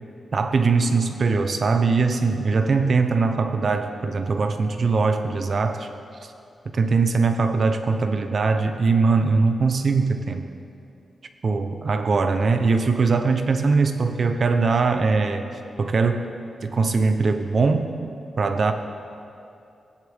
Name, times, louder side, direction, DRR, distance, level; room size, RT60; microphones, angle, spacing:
voice 1, 0.3-5.9 6.7-10.5 11.4-15.5 15.8-16.3 16.6-17.9 18.4-18.7, right 4 dB, 45° right, 7 dB, 0.7 m, -21 dB
18.0 x 10.0 x 3.6 m, 2.6 s
wide cardioid pair, 170°, 0 cm